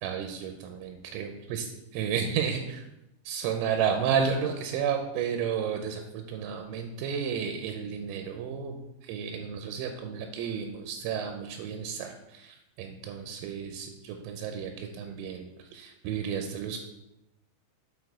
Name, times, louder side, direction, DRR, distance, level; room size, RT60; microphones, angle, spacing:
voice 1, 0.0-2.8 3.3-16.9, right 7 dB, 85° right, 4 dB, 3.2 m, -32 dB
8.6 x 4.4 x 4.8 m, 0.92 s
omnidirectional pair, 5.9 m